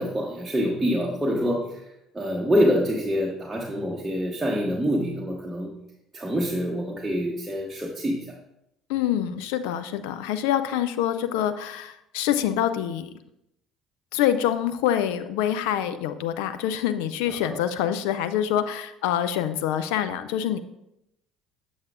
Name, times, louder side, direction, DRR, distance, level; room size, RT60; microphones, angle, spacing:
voice 1, 0.0-1.8 2.1-5.7 6.1-8.3 17.3-17.6, equal, 15° right, -3 dB, 1.1 m, -26 dB
voice 2, 8.9-13.1 14.1-20.6, left 10 dB, 70° left, 11 dB, 0.4 m, -26 dB
7.8 x 7.1 x 2.4 m, 0.84 s
hypercardioid pair, 60°, 0 cm